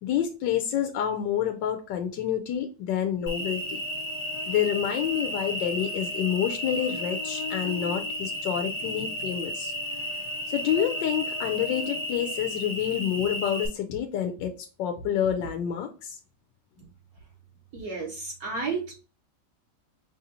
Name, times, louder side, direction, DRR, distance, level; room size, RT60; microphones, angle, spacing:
voice 1, 0.0-3.8 4.5-9.7 10.5-16.2, left 9 dB, 85° left, 5 dB, 1.2 m, -28 dB
Cricket, 3.3-13.7, equal, 35° left, 0.6 m, -33 dB
voice 2, 17.7-18.9, right 4 dB, 65° right, -2 dB, 1.2 m, -32 dB
5.3 x 2.8 x 2.5 m, 0.35 s
omnidirectional pair, 1.9 m